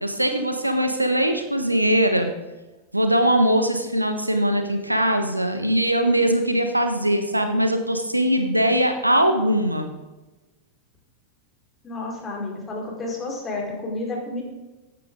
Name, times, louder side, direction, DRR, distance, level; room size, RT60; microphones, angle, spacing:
voice 1, 0.0-2.3 2.9-9.9, right 1 dB, 85° right, 7 dB, 1.3 m, -21 dB
voice 2, 11.8-14.4, left 2 dB, 20° left, -1 dB, 4.5 m, -30 dB
15.0 x 10.5 x 3.8 m, 1.1 s
figure-of-eight pair, 90°, 0 cm